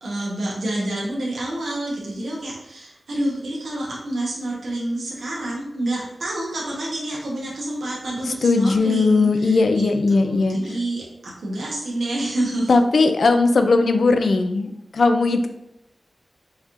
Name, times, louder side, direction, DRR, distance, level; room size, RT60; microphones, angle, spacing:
voice 1, 0.0-12.7, right 1 dB, 85° right, -4 dB, 0.9 m, -28 dB
voice 2, 8.4-10.8 12.7-15.5, left 3 dB, 65° left, 7 dB, 0.4 m, -18 dB
4.0 x 2.6 x 2.9 m, 0.89 s
wide cardioid pair, 125°, 0 cm